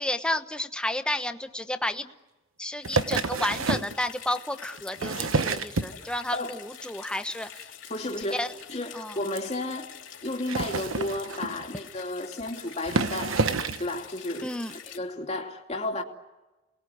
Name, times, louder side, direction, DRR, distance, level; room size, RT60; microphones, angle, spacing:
voice 1, 0.0-2.1 2.6-7.6 8.3-8.5 8.9-9.2 14.4-14.8, left 1 dB, 5° left, 1.1 m, -31 dB
sound 1, 2.8-15.0, left 9 dB, 70° left, 3.0 m, -46 dB
sound 2, 2.8-4.0 4.8-6.4 6.7-7.2 7.4-7.6 7.9-8.0 8.2-8.3 8.6-8.7 9.3-9.4 10.3-11.7 12.4-12.5 12.8-13.9 14.7-14.8, right 3 dB, 90° right, 1.2 m, -28 dB
voice 2, 7.9-9.9 10.2-13.4 13.8-14.5 14.9-16.0, left 2 dB, 35° left, 2.9 m, -32 dB
29.0 x 21.0 x 9.5 m
head